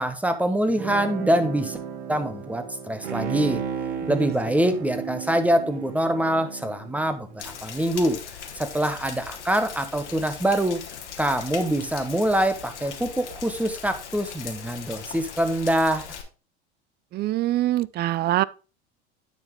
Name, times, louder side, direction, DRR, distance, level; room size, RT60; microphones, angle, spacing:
voice 1, 0.0-1.8 2.1-3.6 4.1-8.2 8.6-10.8 11.2-16.0, right 1 dB, 5° right, 1.1 m, -24 dB
Guitar, 0.7-7.8, right 7 dB, 55° right, 1.4 m, -39 dB
Bowed string instrument, 3.0-7.6 8.0-8.1, right 7 dB, 90° right, 1.0 m, -34 dB
Rain, 7.4-16.2, left 7 dB, 90° left, 1.3 m, -39 dB
voice 2, 17.1-18.4, right 15 dB, 30° right, 0.4 m, -24 dB
9.3 x 5.1 x 3.6 m
hypercardioid pair, 85°, 34 cm